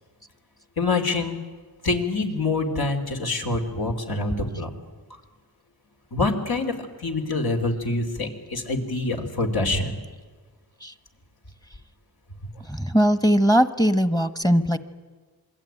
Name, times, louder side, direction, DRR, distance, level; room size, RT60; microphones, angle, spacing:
voice 1, 0.8-1.4 1.8-4.7 6.1-10.0, left 3 dB, 70° left, 3 dB, 3.6 m, -26 dB
voice 2, 12.7-14.8, equal, 10° left, 11 dB, 1.2 m, -20 dB
27.0 x 22.5 x 9.2 m, 1.4 s
wide cardioid pair, 65°, 38 cm